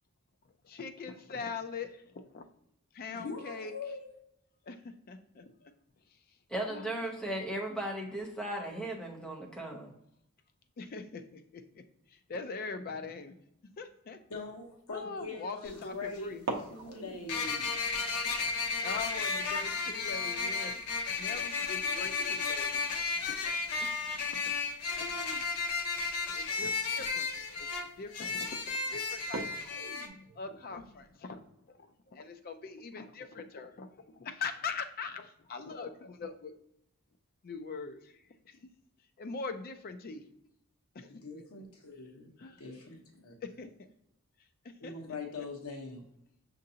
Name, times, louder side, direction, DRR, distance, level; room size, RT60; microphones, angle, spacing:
voice 1, 0.6-1.9 2.2-2.4 2.9-3.7 4.6-5.7 6.1-6.2 6.7-7.4 10.8-13.3 13.8-14.2 14.9-16.5 18.8-20.7 21.2-22.7 23.3-23.9 24.3-24.4 25.0-25.4 26.3-29.7 30.4-31.4 31.7-36.5 37.4-38.6 39.2-40.2 40.9-41.1 42.4-42.6 43.4-43.7 44.6-45.5, left 4 dB, 40° left, 8 dB, 0.4 m, -42 dB
voice 2, 3.1-4.0 14.3-17.8 41.2-42.3 42.6-43.3 44.8-46.1, left 3 dB, 75° left, 0 dB, 1.0 m, -42 dB
voice 3, 6.5-9.9, right 1 dB, 5° left, 0 dB, 0.7 m, -36 dB
sound 1, 14.8-15.1 16.3-22.8 23.0-23.1 23.5-23.9 24.9-25.0 25.7-25.8 26.3-26.4 26.8-27.1 27.7-28.1 28.5-28.6 29.2-31.5, right 3 dB, 60° right, 0.6 m, -45 dB
sound 2, 15.7-15.8 17.3-30.1, left 4 dB, 90° left, 0.6 m, -33 dB
6.4 x 2.6 x 2.7 m, 0.78 s
head